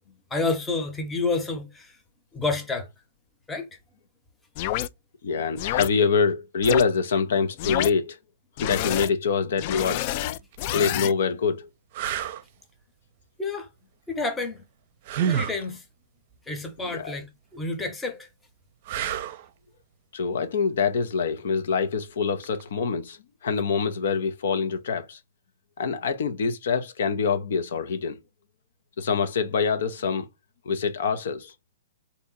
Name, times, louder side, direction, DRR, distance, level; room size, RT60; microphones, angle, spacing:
voice 1, 0.3-2.0 2.3-2.9 3.5-3.7 13.4-13.7 14.1-14.6 15.2-15.8 16.5-18.3, left 3 dB, 10° left, 0.9 m, -29 dB
sound 1, 4.6-4.9 5.6-5.9 6.6-6.8 7.6-7.9 8.6-9.1 9.6-11.1, left 14 dB, 45° left, 0.3 m, -28 dB
voice 2, 5.2-8.2 8.6-10.0 10.7-11.7 16.9-17.2 20.1-25.2 25.8-28.2 29.0-30.3 30.6-31.5, left 5 dB, 65° left, 0.7 m, -25 dB
sound 2, 10.3-10.5 11.2-11.3 11.9-12.4 15.0-15.6 18.8-19.5 22.4-22.6, right 8 dB, 50° right, 0.6 m, -28 dB
3.5 x 2.8 x 4.1 m
hypercardioid pair, 125°, 0 cm